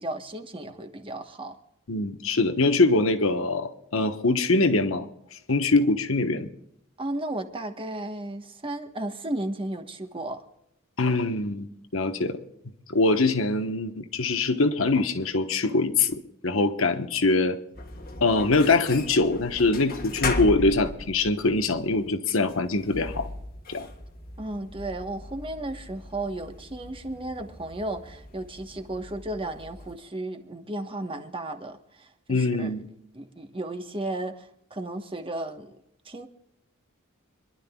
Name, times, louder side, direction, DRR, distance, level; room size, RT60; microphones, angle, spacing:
voice 1, 0.0-1.6 7.0-10.4 24.4-32.8 33.1-35.8 36.0-36.3, right 1 dB, 25° right, 1.2 m, -34 dB
voice 2, 1.9-5.1 5.5-6.5 11.0-11.7 11.9-12.4 12.9-17.6 18.2-23.3 23.7-23.9 32.3-32.9, left 3 dB, 70° left, 1.2 m, -23 dB
sound 1, 17.7-30.0, left 2 dB, 45° left, 1.6 m, -38 dB
26.5 x 12.0 x 2.4 m
head